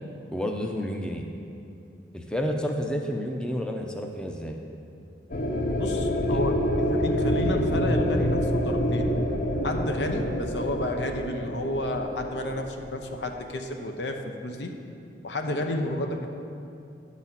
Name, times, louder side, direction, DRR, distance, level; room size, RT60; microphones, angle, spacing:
voice 1, 0.3-1.3 2.1-4.6 6.3-6.5, equal, 5° left, 2 dB, 0.5 m, -30 dB
sound 1, 5.3-13.4, equal, 50° left, 0.7 m, -27 dB
voice 2, 5.8-6.5 6.9-9.1 9.6-14.7 15.2-16.3, left 1 dB, 80° left, 4 dB, 0.8 m, -31 dB
10.5 x 4.1 x 7.3 m, 2.6 s
head